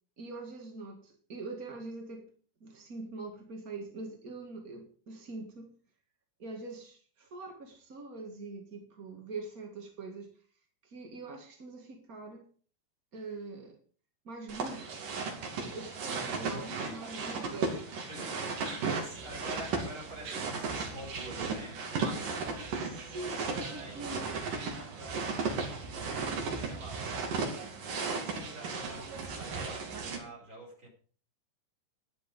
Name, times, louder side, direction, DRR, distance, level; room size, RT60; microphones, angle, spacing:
voice 1, 0.2-2.3 2.6-5.7 6.4-10.3 10.8-12.5 13.1-13.8 14.2-15.0 15.5-17.9 22.6-24.5, right 3 dB, 40° right, 2 dB, 1.2 m, -43 dB
sound 1, 14.5-30.2, right 4 dB, 60° right, 4.2 m, -35 dB
voice 2, 16.4-17.3 18.1-22.7 23.1-30.9, right 1 dB, 20° right, -2 dB, 5.5 m, -48 dB
14.0 x 10.5 x 5.3 m, 0.43 s
omnidirectional pair, 4.6 m